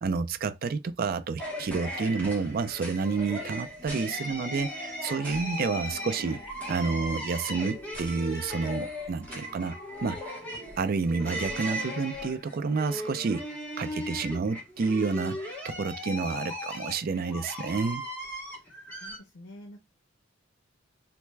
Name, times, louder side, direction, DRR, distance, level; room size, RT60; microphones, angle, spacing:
voice 1, 0.0-6.4 6.7-9.8 10.0-10.2 10.8-13.5 13.8-18.1, right 4 dB, 45° right, 0.4 m, -29 dB
audacity maddness, 1.4-19.2, equal, 5° left, 1.0 m, -37 dB
voice 2, 18.6-19.8, left 1 dB, 85° left, 0.6 m, -49 dB
3.3 x 2.1 x 3.2 m
head